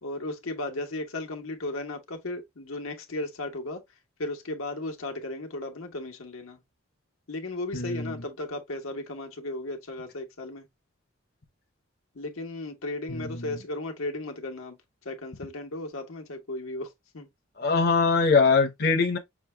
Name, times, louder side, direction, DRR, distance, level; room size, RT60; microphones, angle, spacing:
voice 1, 0.0-3.8 4.2-6.6 7.3-10.7 12.1-14.8 15.0-17.3, left 2 dB, 80° left, 1.1 m, -35 dB
voice 2, 7.7-8.1 13.1-13.6 17.6-19.2, left 4 dB, 50° left, 0.9 m, -23 dB
6.1 x 2.2 x 3.2 m
head